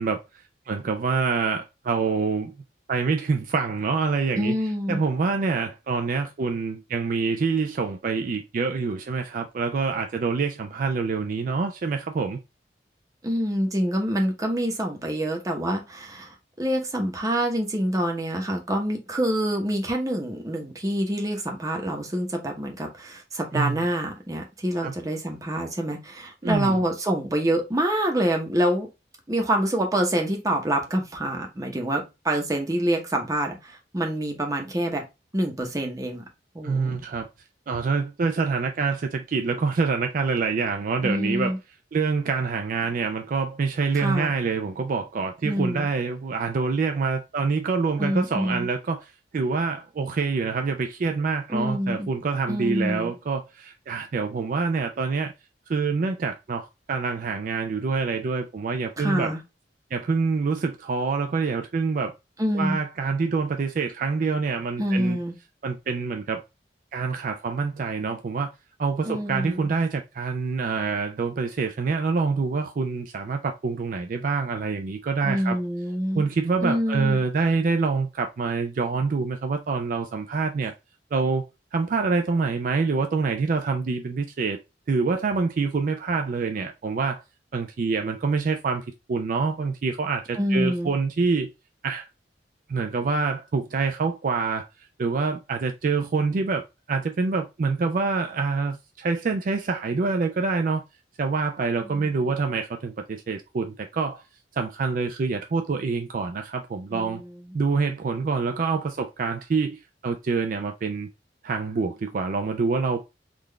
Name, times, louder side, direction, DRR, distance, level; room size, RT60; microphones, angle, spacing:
voice 1, 0.0-2.5 2.9-4.6 4.9-12.4 23.5-23.8 24.8-24.9 26.4-26.8 36.6-37.3 37.7-41.5 41.9-55.3 55.7-59.3 59.9-62.1 62.5-65.2 65.6-66.4 66.9-68.5 68.8-75.6 76.1-80.7 81.1-81.5 81.7-84.6 84.9-87.2 87.5-91.5 91.8-92.1 92.7-94.7 95.0-100.8 101.2-104.2 104.5-107.2 107.5-111.1 111.4-113.0, right 4 dB, 50° right, 0.4 m, -26 dB
voice 2, 4.3-5.0 13.2-28.9 29.3-35.0 35.3-36.2 36.5-37.0 41.0-41.6 43.9-44.3 45.4-45.9 48.0-48.7 51.5-52.1 52.5-53.1 59.0-59.4 62.4-62.8 64.8-65.3 69.0-69.7 75.2-76.3 76.6-77.2 90.4-90.9 106.9-107.5, equal, 20° right, 0.8 m, -26 dB
3.8 x 2.4 x 3.2 m
head